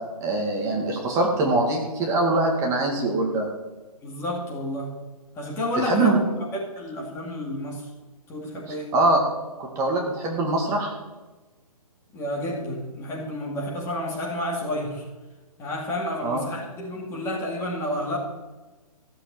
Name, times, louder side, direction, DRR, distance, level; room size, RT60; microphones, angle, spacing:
voice 1, 0.2-3.5 5.8-6.2 8.7-9.2 9.6-10.9 16.2-16.4, right 2 dB, 15° right, 0 dB, 2.2 m, -23 dB
voice 2, 4.0-4.9 5.4-6.1 6.4-6.5 6.8-7.9 8.3-8.9 12.1-15.1 15.6-18.2, left 1 dB, 15° left, -2 dB, 2.2 m, -30 dB
15.5 x 7.6 x 9.3 m, 1.2 s
hypercardioid pair, 160°, 20 cm